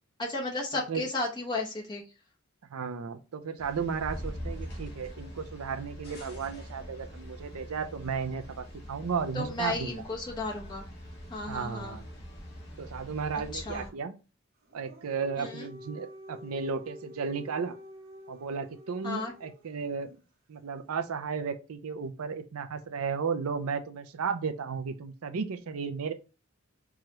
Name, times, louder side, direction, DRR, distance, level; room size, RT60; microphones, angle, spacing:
voice 1, 0.2-2.0 9.3-10.8 11.3-12.0 13.5-13.9 15.4-15.7 19.0-19.3, left 2 dB, 20° left, 0.9 m, -34 dB
voice 2, 2.7-10.0 11.5-12.0 12.8-14.1 14.7-17.7 18.3-20.2 20.5-26.1, right 5 dB, 80° right, 0.5 m, -34 dB
sound 1, 3.6-13.9, equal, 45° left, 1.3 m, -43 dB
Dog, 14.6-19.8, left 1 dB, 40° right, 0.8 m, -49 dB
4.7 x 2.4 x 3.0 m
head